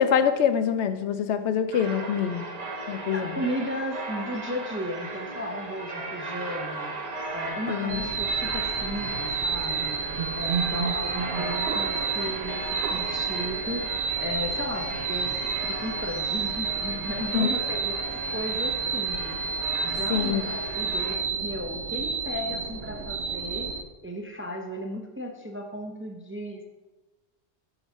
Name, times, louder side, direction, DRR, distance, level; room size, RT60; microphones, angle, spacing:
voice 1, 0.0-2.5 2.9-3.4 7.7-8.0 17.2-17.5 20.1-20.4, left 8 dB, 80° left, 10 dB, 0.9 m, -25 dB
sound 1, 1.7-21.2, right 2 dB, 40° right, 0.9 m, -37 dB
voice 2, 3.1-6.9 7.3-10.0 10.4-13.8 14.2-15.3 15.6-19.5 19.8-23.7 24.0-26.6, equal, 15° right, 2 dB, 0.4 m, -35 dB
sound 2, 7.9-23.8, right 5 dB, 65° right, 0.8 m, -30 dB
7.0 x 3.9 x 5.5 m, 1.1 s
omnidirectional pair, 1.1 m